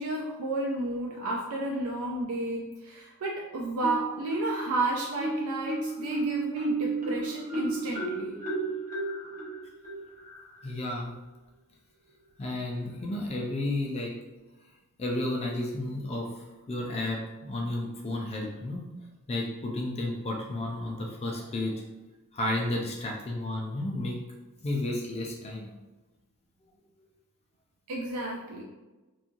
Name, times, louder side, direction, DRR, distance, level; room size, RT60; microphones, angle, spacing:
voice 1, 0.0-8.4 27.9-28.6, right 2 dB, 70° right, -1 dB, 0.4 m, -32 dB
Marimba xylophone, 3.8-4.7 5.2-10.7, right 2 dB, 35° right, 0.6 m, -33 dB
voice 2, 10.6-11.1 12.4-14.1 15.0-18.9 19.3-21.7 22.3-24.2 24.6-25.7, left 1 dB, 30° left, 0 dB, 0.3 m, -32 dB
2.9 x 2.3 x 2.5 m, 1.1 s
head